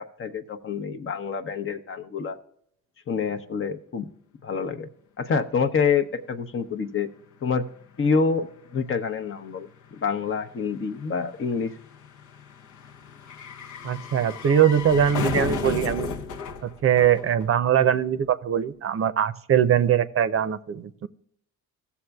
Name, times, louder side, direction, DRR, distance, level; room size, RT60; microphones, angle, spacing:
voice 1, 0.0-2.4 3.1-4.1 4.4-4.9 5.2-7.1 7.4-7.6 8.0-8.5 8.7-11.7, left 5 dB, 45° left, 6 dB, 0.8 m, -27 dB
sound 1, 7.2-7.3 7.5-17.9 18.2-18.3, left 5 dB, 80° left, 0.9 m, -35 dB
voice 2, 13.8-16.1 16.6-21.1, right 9 dB, 50° right, 12 dB, 0.6 m, -22 dB
14.5 x 7.0 x 2.3 m, 0.70 s
cardioid pair, 90°, 30 cm